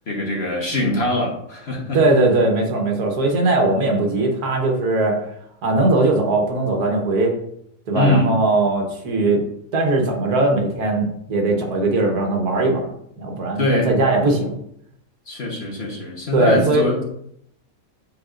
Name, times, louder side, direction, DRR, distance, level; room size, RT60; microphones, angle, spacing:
voice 1, 0.1-2.0 7.9-8.3 13.6-13.9 15.3-17.0, left 1 dB, 45° left, -1 dB, 1.3 m, -22 dB
voice 2, 1.9-5.2 5.6-7.3 7.9-9.5 9.7-12.9 13.2-14.6 16.3-16.9, right 2 dB, 70° right, 2 dB, 1.6 m, -19 dB
7.9 x 4.7 x 2.5 m, 0.72 s
omnidirectional pair, 1.7 m